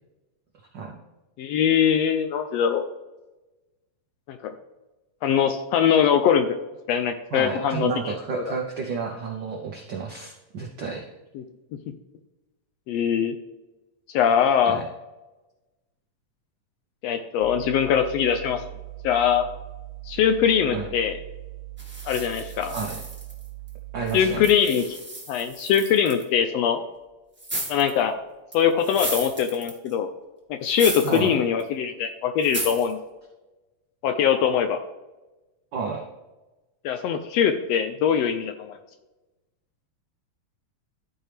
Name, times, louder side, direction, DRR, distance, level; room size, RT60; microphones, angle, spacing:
voice 1, 1.4-2.8 4.3-4.5 5.2-6.5 6.9-8.5 11.3-11.4 12.9-13.3 14.1-14.8 17.0-18.6 19.0-19.5 20.1-21.2 22.0-22.7 24.1-25.0 25.3-26.8 27.7-28.2 28.5-30.1 30.5-33.0 34.0-34.8 36.8-38.8, left 8 dB, 80° left, 7 dB, 1.5 m, -22 dB
voice 2, 7.3-11.0 14.6-14.9 20.7-20.9 22.7-23.0 23.9-24.4 31.0-31.4 35.7-36.0, right 5 dB, 80° right, 0 dB, 1.0 m, -31 dB
sound 1, 17.4-24.5, right 21 dB, 55° left, 2.5 m, -40 dB
sound 2, 21.8-23.7 24.1-26.2 27.4-28.0 28.5-29.9 30.6-31.3 31.6-31.7 32.4-32.9, right 1 dB, 10° right, 0.7 m, -34 dB
13.5 x 4.5 x 3.4 m, 1.1 s
omnidirectional pair, 3.3 m